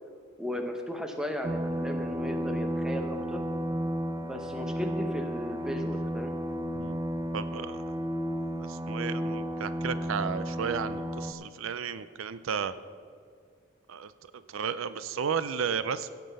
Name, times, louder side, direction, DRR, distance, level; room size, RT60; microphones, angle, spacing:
voice 1, 0.4-3.4 4.2-6.4, equal, 5° right, 4 dB, 0.8 m, -36 dB
sound 1, 1.4-11.3, equal, 20° right, 0.5 m, -33 dB
voice 2, 7.3-7.8 8.6-12.7 13.9-16.1, right 7 dB, 85° right, 14 dB, 0.5 m, -33 dB
17.0 x 6.0 x 5.4 m, 2.2 s
head